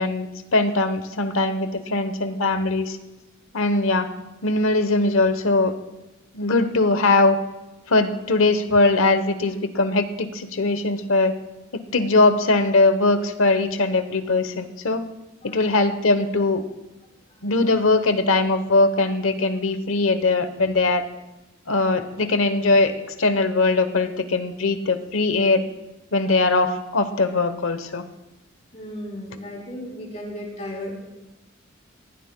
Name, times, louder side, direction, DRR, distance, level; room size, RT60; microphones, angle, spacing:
voice 1, 0.0-3.0 3.5-4.1 4.4-5.7 6.3-7.4 7.9-11.3 11.7-15.0 15.4-16.6 17.4-21.1 21.7-22.9 23.2-25.6 26.1-28.0, left 3 dB, 85° left, 10 dB, 1.0 m, -21 dB
voice 2, 28.7-30.9, left 1 dB, 35° left, -2 dB, 3.7 m, -35 dB
19.0 x 15.5 x 2.3 m, 1.0 s
head